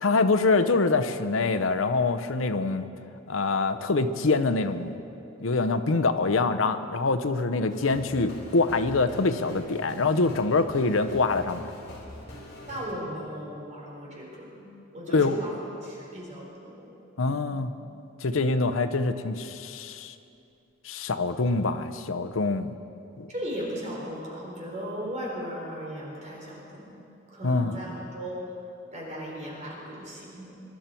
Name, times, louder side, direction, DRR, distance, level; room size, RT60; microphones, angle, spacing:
voice 1, 0.0-2.8 3.3-5.0 5.4-11.7 15.1-15.4 17.2-17.7 18.2-20.1 20.8-22.7 23.2-23.3 27.4-27.7, left 3 dB, 75° left, 10 dB, 0.7 m, -25 dB
sound 1, 7.7-12.9, left 1 dB, 55° left, 4.0 m, -44 dB
voice 2, 12.7-15.6 15.8-16.9 17.2-17.4 23.3-27.0 27.3-27.8 28.1-28.4 28.9-30.5, equal, 35° right, -4 dB, 3.9 m, -37 dB
23.5 x 12.0 x 4.5 m, 2.7 s
head